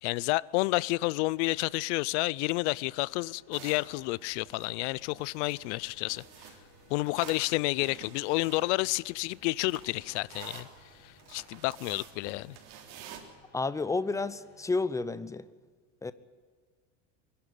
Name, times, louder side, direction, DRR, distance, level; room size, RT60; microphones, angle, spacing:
voice 1, 0.0-6.5 6.9-10.7 11.0-12.6, left 22 dB, 80° left, 0.6 m, -30 dB
sound 1, 1.1-14.7, left 2 dB, 60° left, 5.0 m, -62 dB
sound 2, 3.5-13.2, right 8 dB, 75° right, 3.6 m, -51 dB
voice 2, 13.5-15.5 16.0-16.1, left 3 dB, 10° left, 0.7 m, -31 dB
24.5 x 11.5 x 9.7 m
supercardioid pair, 125°, 35 cm